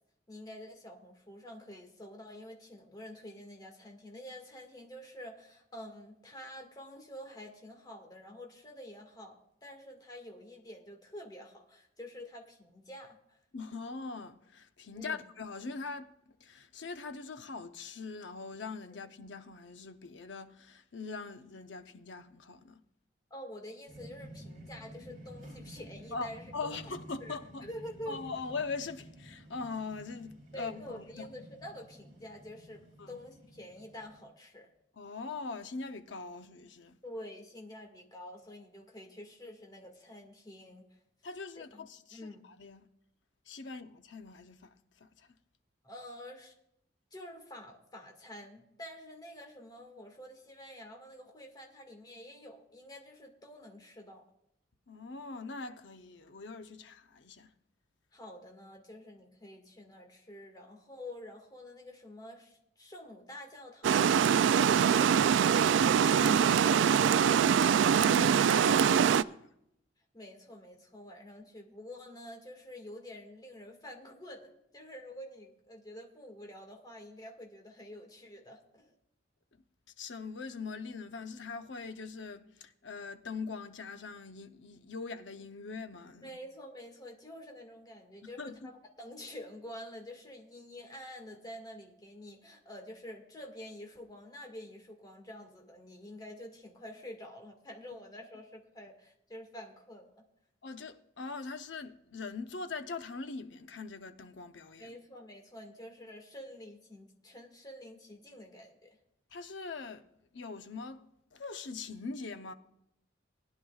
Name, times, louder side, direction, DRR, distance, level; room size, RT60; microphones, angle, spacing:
voice 1, 0.3-13.2 14.9-15.2 23.3-26.5 27.2-27.4 27.6-28.2 30.5-34.7 37.0-40.8 41.6-42.4 45.8-46.5 47.1-54.2 58.1-64.2 64.8-65.8 66.1-67.5 70.1-78.9 86.2-100.2 104.8-109.0, left 1 dB, 20° left, 1.9 m, -48 dB
voice 2, 13.5-16.1 16.4-22.8 26.1-27.7 28.1-31.3 33.0-33.2 35.0-37.0 41.2-42.9 43.5-45.3 54.9-57.5 68.1-69.5 79.5-79.6 80.0-86.4 88.2-88.7 100.6-105.0 109.3-110.1 110.3-111.0 111.3-112.5, left 4 dB, 70° left, 0.8 m, -42 dB
sound 1, 23.9-34.2, equal, 50° right, 5.1 m, -52 dB
Water, 63.8-69.2, right 7 dB, 75° right, 0.3 m, -24 dB
19.5 x 10.5 x 2.4 m
head